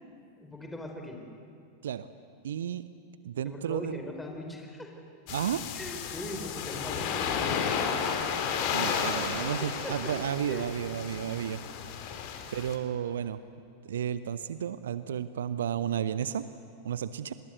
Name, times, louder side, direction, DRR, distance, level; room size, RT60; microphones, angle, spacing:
voice 1, 0.4-1.3 3.4-4.9 5.7-8.2 9.4-9.9 10.5-10.7 11.0-11.1, left 1 dB, 5° left, 2 dB, 4.5 m, -41 dB
voice 2, 2.4-2.8 3.2-4.0 5.3-5.6 8.7-11.6 12.5-13.4 13.8-16.4 16.8-17.3, right 9 dB, 60° right, 14 dB, 0.7 m, -32 dB
sound 1, 5.3-12.8, left 7 dB, 45° left, 2.6 m, -32 dB
26.0 x 21.0 x 8.1 m, 2.3 s
figure-of-eight pair, 90°, 0 cm